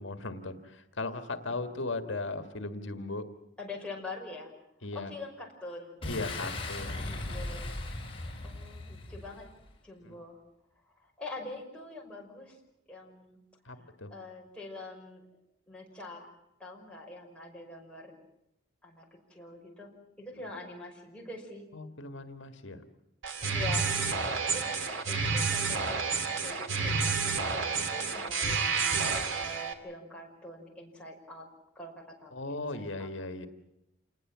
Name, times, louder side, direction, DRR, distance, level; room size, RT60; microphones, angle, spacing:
voice 1, 0.0-3.2 4.8-5.1 6.0-7.0 10.0-10.1 13.7-14.1 21.7-22.8 32.3-33.5, left 2 dB, 75° left, 8 dB, 1.7 m, -37 dB
voice 2, 3.6-4.5 4.9-6.0 6.9-7.7 8.4-9.5 9.8-10.4 10.9-12.6 12.9-13.4 13.7-15.2 15.7-16.3 16.6-18.2 18.8-19.9 20.2-21.6 23.5-24.1 24.5-24.8 25.1-26.0 26.4-31.5 31.8-33.1, left 2 dB, 5° left, -2 dB, 5.5 m, -45 dB
Boom, 6.0-9.6, left 2 dB, 30° left, 4.9 m, -38 dB
sound 1, 23.2-29.7, right 4 dB, 90° right, 2.5 m, -30 dB
28.0 x 20.0 x 7.4 m, 0.86 s
head